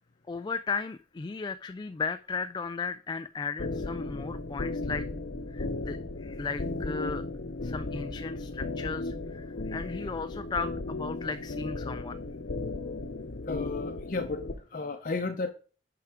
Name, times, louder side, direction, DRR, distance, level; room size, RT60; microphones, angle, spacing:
voice 1, 0.3-5.1 5.5-7.2 7.6-12.2, left 4 dB, 25° left, 11 dB, 0.3 m, -35 dB
sound 1, 3.6-14.5, left 2 dB, 85° left, 0.9 m, -35 dB
voice 2, 13.5-15.5, left 3 dB, 50° left, 5 dB, 0.7 m, -33 dB
10.5 x 4.9 x 4.9 m, 0.38 s
head